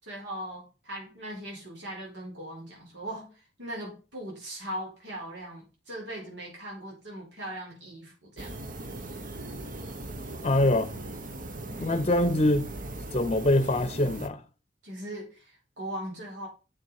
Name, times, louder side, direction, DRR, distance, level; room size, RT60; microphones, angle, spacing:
voice 1, 0.0-8.6 14.8-16.5, right 1 dB, 75° right, 4.8 m, -39 dB
sound 1, 8.4-14.3, right 2 dB, 50° right, 1.0 m, -39 dB
voice 2, 10.4-10.9 11.8-12.7 13.1-14.4, left 1 dB, 35° left, 0.7 m, -24 dB
7.6 x 7.1 x 4.8 m
head